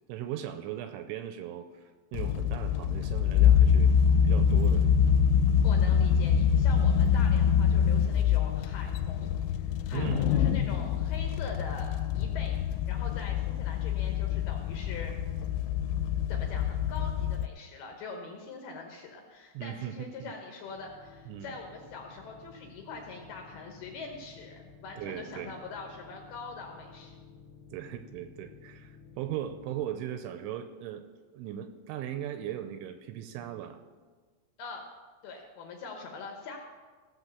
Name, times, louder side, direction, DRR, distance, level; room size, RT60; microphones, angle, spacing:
voice 1, 0.1-3.9 4.2-4.9 6.8-7.3 9.9-10.3 19.5-20.3 21.3-21.6 25.0-25.6 27.7-31.1 31.3-33.8, right 11 dB, 85° right, 9 dB, 2.9 m, -38 dB
sound 1, 2.1-17.5, left 8 dB, 85° left, 3.1 m, -25 dB
voice 2, 5.6-12.6 12.9-15.1 16.3-27.2 34.6-34.9 35.2-36.6, left 4 dB, 70° left, 2 dB, 2.5 m, -43 dB
sound 2, 20.6-29.9, left 5 dB, 65° right, 0.6 m, -53 dB
15.5 x 6.3 x 6.9 m, 1.5 s
omnidirectional pair, 5.7 m